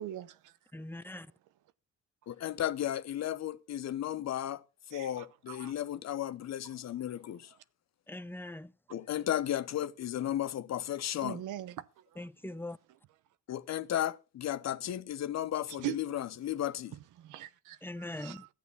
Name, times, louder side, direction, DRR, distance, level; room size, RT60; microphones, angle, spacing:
voice 1, 0.0-0.5 4.9-5.7 11.2-12.0 15.8-16.0 17.2-17.8 18.2-18.4, right 13 dB, 85° right, 0.9 m, -41 dB
voice 2, 0.7-1.3 8.1-8.7 12.2-12.8 17.8-18.5, left 1 dB, 5° left, 0.6 m, -41 dB
voice 3, 2.3-7.5 8.9-11.4 13.5-17.0, left 11 dB, 60° left, 0.8 m, -34 dB
14.5 x 8.4 x 5.5 m
cardioid pair, 90°, 30 cm